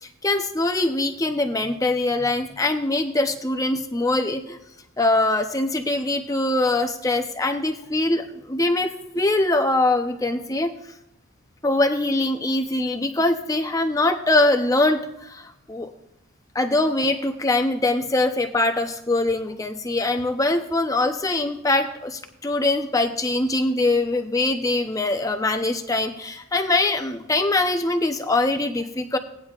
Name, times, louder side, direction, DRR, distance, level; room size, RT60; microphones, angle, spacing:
voice 1, 0.0-4.6 5.0-10.7 11.6-15.9 16.5-29.2, left 2 dB, 15° left, 5 dB, 0.7 m, -23 dB
17.5 x 9.7 x 2.4 m, 0.82 s
head